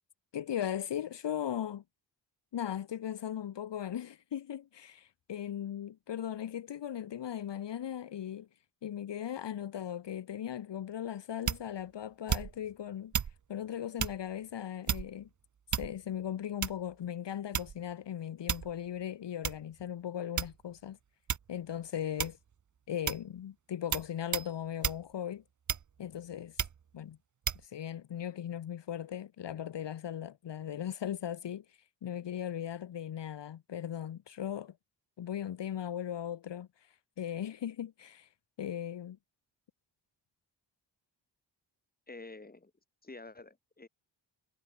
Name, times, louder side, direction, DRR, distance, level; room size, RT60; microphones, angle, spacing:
voice 1, 0.3-1.8 2.5-8.5 8.8-13.1 13.5-15.3 15.7-21.0 21.5-22.4 22.9-25.4 26.0-26.6 26.9-27.2 27.6-34.7 35.2-38.3 38.6-39.2, left 10 dB, 70° left, 1.6 m, -38 dB
sound 1, 11.5-11.8 12.3-12.7 13.1-13.4 14.0-14.2 14.9-15.3 15.7-16.1 16.6-16.9 17.5-17.9 18.5-18.8 19.4-19.6 20.4-20.8 21.3-21.5 22.2-22.5 23.1-23.3 23.9-24.1 24.3-24.5 24.8-25.0 25.7-26.1 26.6-26.8 27.5-27.6, right 7 dB, 40° right, 1.0 m, -33 dB
voice 2, 42.1-42.7 43.0-43.9, left 3 dB, 20° left, 6.2 m, -48 dB
wide cardioid pair, 130°, 44 cm